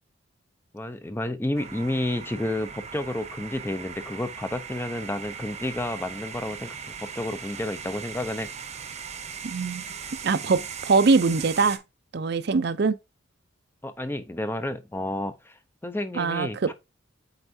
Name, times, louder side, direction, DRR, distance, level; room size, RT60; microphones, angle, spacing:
voice 1, 0.7-8.5 10.4-10.6 13.8-16.7, left 1 dB, 10° left, 0.4 m, -31 dB
sound 1, 1.5-11.8, right 6 dB, 35° right, 0.8 m, -39 dB
voice 2, 9.4-9.8 10.2-11.8 12.1-13.0 16.1-16.7, right 4 dB, 55° right, 0.5 m, -22 dB
7.9 x 4.5 x 2.6 m
head